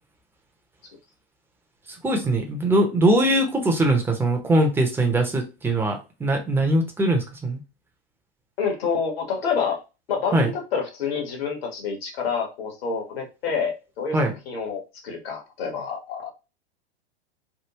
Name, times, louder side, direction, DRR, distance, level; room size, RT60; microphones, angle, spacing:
voice 1, 2.0-7.6 10.3-10.5 14.1-14.3, right 1 dB, 5° right, 2 dB, 0.7 m, -21 dB
voice 2, 8.6-9.8 10.1-14.2 14.4-16.3, left 6 dB, 60° left, 2 dB, 1.5 m, -28 dB
3.4 x 2.2 x 2.9 m, 0.28 s
hypercardioid pair, 105°, 33 cm